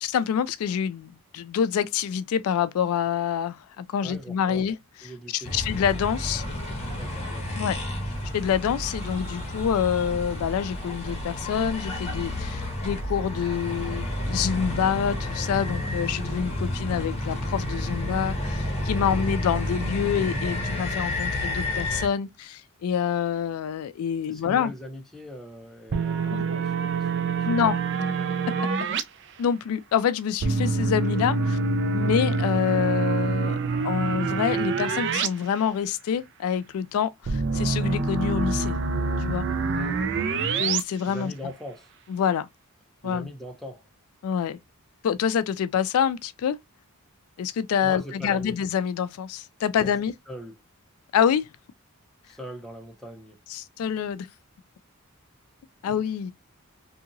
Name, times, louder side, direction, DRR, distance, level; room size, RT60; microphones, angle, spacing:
voice 1, 0.0-4.8 5.3-6.4 7.6-7.8 8.3-24.7 26.3-26.4 27.4-27.8 29.4-31.6 31.9-33.6 33.8-38.8 39.2-39.5 40.6-41.3 42.1-42.5 43.0-43.3 44.2-44.6 45.0-46.6 47.4-50.1 51.1-51.5 53.5-54.3 55.8-56.3, left 8 dB, 70° left, 0.3 m, -26 dB
voice 2, 4.0-4.7 5.0-5.6 6.9-7.6 19.0-19.3 24.3-27.8 39.7-40.1 41.0-41.9 43.0-43.9 47.8-48.5 49.8-49.9 50.3-50.6 52.2-53.4, equal, ahead, 0.6 m, -41 dB
sound 1, 5.4-22.1, left 1 dB, 30° left, 1.2 m, -30 dB
sound 2, 25.9-29.0 30.4-35.3 35.6-35.7 37.3-40.8, right 4 dB, 55° right, 0.4 m, -26 dB
2.7 x 2.7 x 2.5 m
head